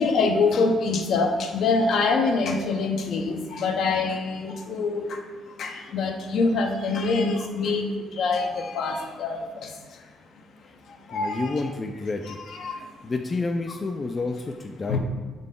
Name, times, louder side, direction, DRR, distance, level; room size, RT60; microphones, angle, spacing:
voice 1, 0.0-10.0 10.8-11.5 12.6-12.9 14.9-15.0, left 4 dB, 70° left, 4 dB, 0.7 m, -25 dB
voice 2, 11.1-12.4 13.0-15.0, left 3 dB, 30° left, 4 dB, 0.4 m, -29 dB
6.4 x 4.0 x 3.7 m, 1.5 s
cardioid pair, 90°, 0 cm